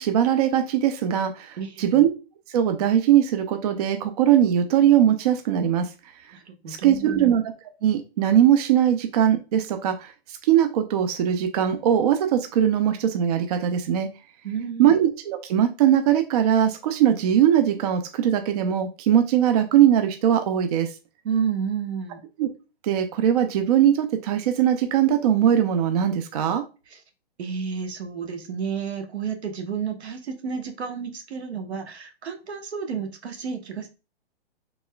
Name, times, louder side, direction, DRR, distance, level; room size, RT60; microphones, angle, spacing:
voice 1, 0.0-2.1 2.5-5.9 6.7-7.4 7.8-14.1 14.8-20.9 22.4-22.5 22.8-26.6, right 10 dB, 40° right, 7 dB, 0.4 m, -20 dB
voice 2, 1.6-2.0 6.5-7.3 14.4-14.9 21.2-22.2 26.9-27.0 27.4-33.9, right 6 dB, 80° right, 6 dB, 1.1 m, -31 dB
4.0 x 3.2 x 2.2 m, 0.31 s
hypercardioid pair, 140°, 32 cm